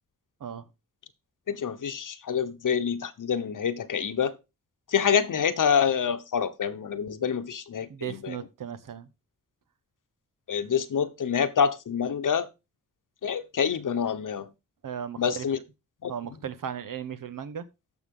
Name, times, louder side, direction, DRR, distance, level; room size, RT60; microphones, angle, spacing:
voice 1, 1.5-4.4 4.9-8.4 10.5-12.5 13.2-14.5 15.2-15.6 16.0-16.1, left 7 dB, 75° left, 1.1 m, -27 dB
voice 2, 7.9-9.1 14.8-15.5 16.1-17.7, right 8 dB, 80° right, 1.1 m, -36 dB
14.0 x 5.8 x 3.8 m
wide cardioid pair, 105°, 32 cm